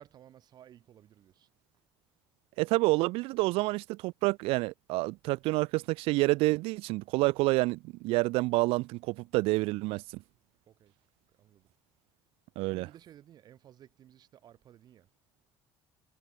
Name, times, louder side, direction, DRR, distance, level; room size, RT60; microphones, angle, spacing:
voice 1, 0.0-1.5 10.7-10.9 11.4-11.7 12.7-15.1, right 11 dB, 45° right, 3.6 m, -56 dB
voice 2, 2.6-10.2 12.6-12.9, right 22 dB, 90° right, 0.4 m, -28 dB
cardioid pair, 155°, 9 cm